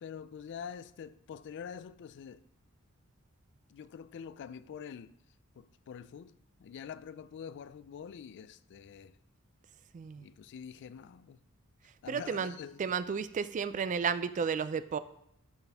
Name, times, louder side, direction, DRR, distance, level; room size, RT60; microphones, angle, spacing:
voice 1, 0.0-2.4 3.7-5.2 5.6-9.2 10.2-11.4 12.0-12.9, left 7 dB, 55° left, 0.3 m, -46 dB
voice 2, 9.9-10.3 12.1-12.5 12.8-15.0, right 6 dB, 35° right, 0.3 m, -32 dB
12.0 x 4.2 x 3.5 m
head